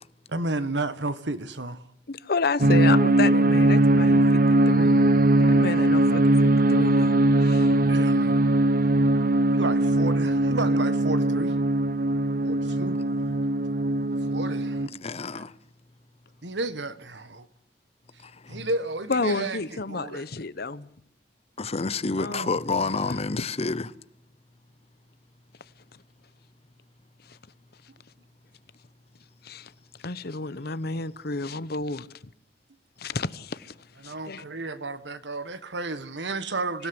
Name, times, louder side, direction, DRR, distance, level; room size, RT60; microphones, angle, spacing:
voice 1, 0.3-1.9 7.9-8.4 9.5-11.5 12.4-13.0 14.2-15.4 16.4-17.5 18.5-20.2 22.2-22.5 34.0-36.9, right 2 dB, 80° right, 1.6 m, -32 dB
voice 2, 2.1-5.0 5.4-7.8 19.1-20.9 22.2-23.5 27.2-27.4 29.4-29.7 30.0-32.1 33.0-33.7 34.0-34.4, left 3 dB, 60° left, 1.0 m, -31 dB
sound 1, 2.6-14.9, right 1 dB, 55° right, 0.8 m, -20 dB
voice 3, 14.9-15.5 18.2-18.6 21.6-23.9, left 3 dB, 35° left, 0.8 m, -29 dB
25.0 x 16.5 x 8.0 m
head